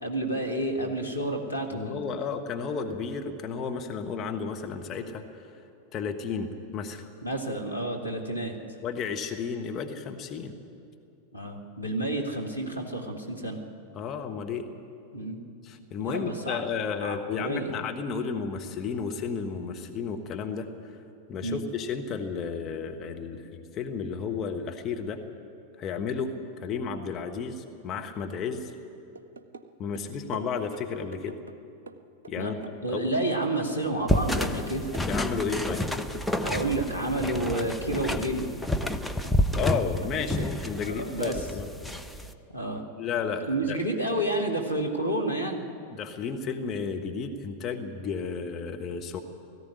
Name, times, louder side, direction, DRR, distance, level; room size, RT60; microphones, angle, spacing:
voice 1, 0.0-2.0 7.2-8.5 11.3-13.6 15.1-15.4 16.0-16.6 17.0-17.7 21.4-21.6 32.4-32.5 32.8-34.9 36.4-38.5 40.8-41.4 42.5-42.8 43.4-45.6, right 1 dB, 90° left, 1 dB, 2.1 m, -30 dB
voice 2, 1.7-5.5 5.9-7.0 8.8-10.5 13.9-14.7 15.6-20.7 21.3-25.2 25.8-28.7 29.8-31.3 32.3-32.5 32.9-33.1 35.0-35.8 39.5-41.7 43.0-43.8 45.9-49.2, left 6 dB, 30° left, 4 dB, 1.4 m, -33 dB
sound 1, 29.2-29.7 30.0-31.6 31.9-34.7 34.9-35.9 36.1-37.8 38.1-39.0 39.2-40.9 41.2-41.4, right 4 dB, 70° right, 0.8 m, -44 dB
sound 2, 34.1-42.3, left 1 dB, ahead, 0.9 m, -29 dB
18.5 x 14.5 x 9.9 m, 2.5 s
figure-of-eight pair, 90°, 0 cm